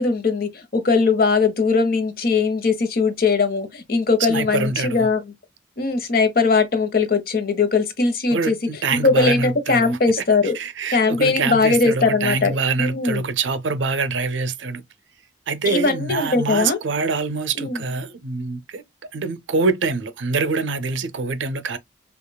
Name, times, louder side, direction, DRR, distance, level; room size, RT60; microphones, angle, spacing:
voice 1, 0.0-5.2 5.8-8.6 8.9-10.6 10.9-13.2 15.7-16.8 17.6-17.8, left 4 dB, 50° left, 0.8 m, -20 dB
voice 2, 4.3-5.1 8.3-10.0 10.4-14.8 15.5-18.8 19.1-21.8, right 4 dB, 75° right, 0.6 m, -25 dB
5.4 x 2.3 x 2.2 m
head